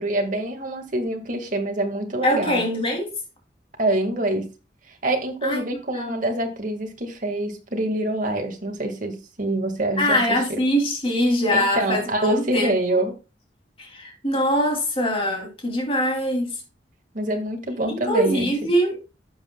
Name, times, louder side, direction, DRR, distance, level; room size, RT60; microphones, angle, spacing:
voice 1, 0.0-2.6 3.8-4.5 5.0-10.6 11.5-13.1 17.1-18.5, right 1 dB, 45° right, 2.0 m, -25 dB
voice 2, 2.2-3.1 5.4-5.6 5.9-6.1 10.0-13.0 13.8-16.6 17.9-19.0, equal, 30° left, 2.9 m, -23 dB
11.5 x 7.8 x 2.3 m
head